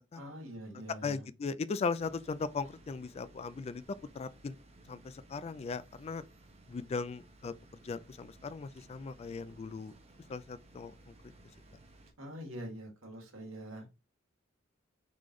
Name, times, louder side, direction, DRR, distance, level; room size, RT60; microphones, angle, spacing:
voice 1, 0.1-1.3 12.2-13.9, equal, 85° right, 1.5 m, -44 dB
voice 2, 1.0-4.6 4.9-6.2 6.7-7.5 7.8-9.9 10.3-11.1, left 4 dB, 30° left, 0.3 m, -38 dB
sound 1, 1.9-12.1, right 1 dB, 30° right, 0.8 m, -58 dB
3.8 x 3.2 x 3.8 m
head